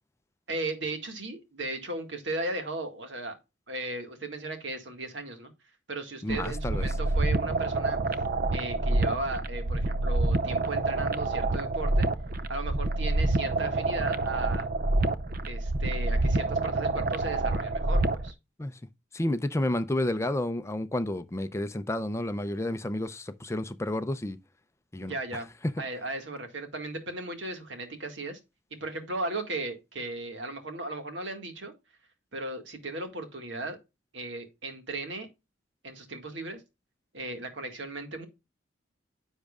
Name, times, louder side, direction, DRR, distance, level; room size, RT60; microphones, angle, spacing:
voice 1, 0.5-3.4 3.7-5.5 5.9-8.0 8.5-12.1 12.5-14.7 15.4-18.3 25.0-25.5 25.8-28.4 28.7-31.7 32.3-33.8 34.1-35.3 35.8-36.6 37.1-38.3, right 2 dB, 70° right, 1.8 m, -36 dB
voice 2, 6.2-6.9 18.6-18.8 19.1-24.4 24.9-25.1, left 1 dB, 15° left, 0.5 m, -30 dB
sound 1, 6.3-18.3, right 2 dB, 50° right, 0.6 m, -27 dB
10.0 x 6.3 x 2.4 m
head